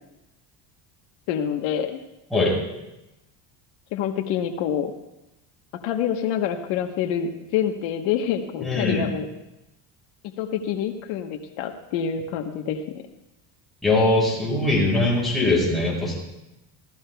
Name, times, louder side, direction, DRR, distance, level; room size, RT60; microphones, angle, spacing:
voice 1, 1.3-2.0 3.9-4.9 5.8-9.3 10.4-12.8, left 8 dB, 75° left, 4 dB, 1.3 m, -26 dB
voice 2, 8.6-9.0 13.8-16.1, left 2 dB, ahead, -7 dB, 6.9 m, -21 dB
27.0 x 16.5 x 2.3 m, 0.94 s
cardioid pair, 175°, 45 cm